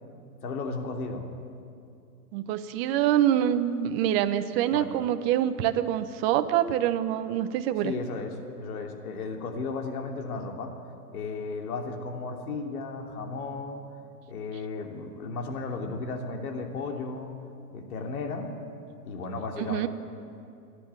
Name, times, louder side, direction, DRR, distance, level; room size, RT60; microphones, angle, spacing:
voice 1, 0.4-1.2 4.7-4.9 7.8-10.7 11.1-13.8 14.3-17.3 17.7-18.5 19.0-19.9, left 4 dB, 65° left, 3 dB, 3.0 m, -34 dB
voice 2, 2.3-7.9 19.6-19.9, right 11 dB, 40° right, 9 dB, 1.1 m, -25 dB
29.5 x 10.0 x 9.8 m, 2.5 s
hypercardioid pair, 120°, 47 cm